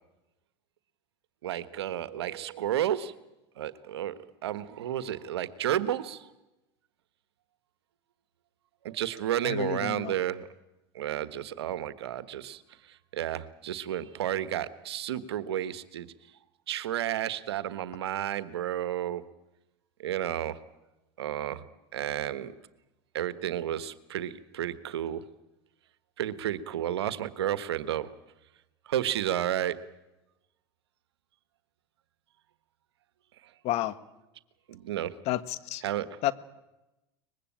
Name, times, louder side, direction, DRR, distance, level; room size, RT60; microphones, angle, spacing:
voice 1, 1.4-3.1 3.6-6.3 8.8-10.5 10.9-16.1 16.7-19.2 20.0-20.6 21.2-21.6 21.9-22.5 23.1-25.2 26.2-28.1 28.8-29.8 33.4-33.5 34.7-35.1 35.8-36.2, right 11 dB, 80° right, 14 dB, 1.4 m, -32 dB
voice 2, 9.4-10.1 33.6-33.9 35.3-35.8 36.2-36.3, left 14 dB, 50° left, 14 dB, 1.5 m, -30 dB
23.5 x 21.0 x 8.8 m, 0.95 s
hypercardioid pair, 90°, 13 cm